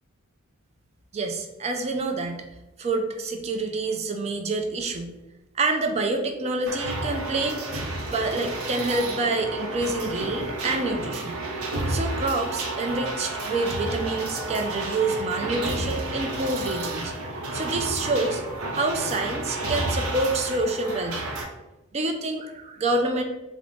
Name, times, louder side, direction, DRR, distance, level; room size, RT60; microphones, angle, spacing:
voice 1, 1.1-2.4 2.8-5.1 5.5-7.6 8.1-11.4 11.9-17.1 17.5-21.3 21.9-23.2, right 2 dB, 30° right, 4 dB, 0.4 m, -27 dB
sound 1, 6.7-21.4, right 2 dB, 80° right, 0.6 m, -31 dB
3.7 x 2.0 x 3.4 m, 0.99 s
head